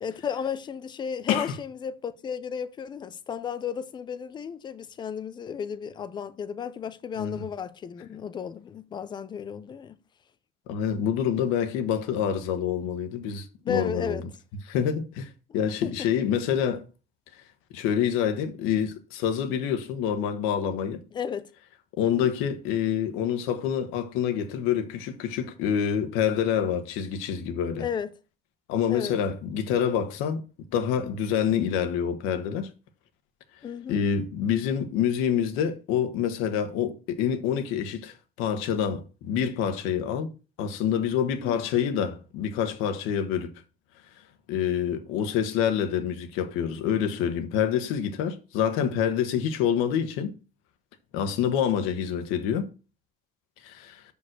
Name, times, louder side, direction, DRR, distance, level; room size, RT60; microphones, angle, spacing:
voice 1, 0.0-10.0 13.6-14.2 15.8-16.1 21.1-21.5 22.0-22.3 27.8-28.1 28.9-29.2 33.6-34.0 41.4-41.6, left 7 dB, 20° left, 0.5 m, -34 dB
voice 2, 10.7-14.2 14.7-16.8 17.7-21.0 22.0-27.8 28.7-30.4 30.7-32.7 33.9-40.3 40.6-43.5 44.5-50.3 51.1-52.7 53.6-54.0, left 8 dB, 85° left, 1.3 m, -27 dB
6.2 x 5.3 x 6.5 m
cardioid pair, 180°, 21 cm